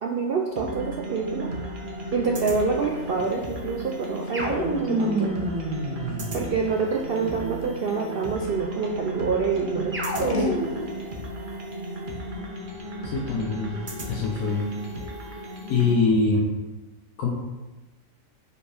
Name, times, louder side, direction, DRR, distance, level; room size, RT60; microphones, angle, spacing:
voice 1, 0.0-1.5 2.1-5.3 6.3-10.5, right 5 dB, 75° right, 1 dB, 0.5 m, -27 dB
sound 1, 0.6-15.9, equal, 40° right, 1.0 m, -35 dB
Scissors, 2.8-9.0 9.5-10.7, left 1 dB, 45° left, 1.1 m, -36 dB
sound 2, 4.3-6.8 9.9-11.0, right 1 dB, 10° right, 0.8 m, -28 dB
voice 2, 13.1-13.7 14.1-14.6 15.7-16.4 17.2-17.3, left 4 dB, 75° left, -3 dB, 1.3 m, -23 dB
5.2 x 4.3 x 5.0 m, 1.2 s
omnidirectional pair, 1.6 m